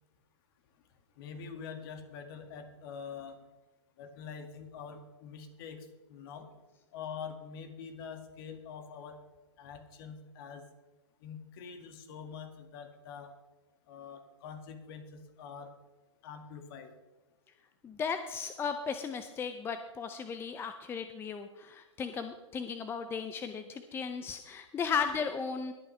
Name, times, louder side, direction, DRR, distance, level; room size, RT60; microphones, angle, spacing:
voice 1, 1.2-3.4 4.0-6.5 6.9-9.2 9.6-10.6 11.2-13.3 13.9-15.7 16.2-16.9, left 6 dB, 50° left, 6 dB, 2.0 m, -45 dB
voice 2, 17.8-25.7, left 6 dB, 15° left, 9 dB, 0.6 m, -36 dB
22.0 x 8.8 x 3.3 m, 1.1 s
hypercardioid pair, 120°, 16 cm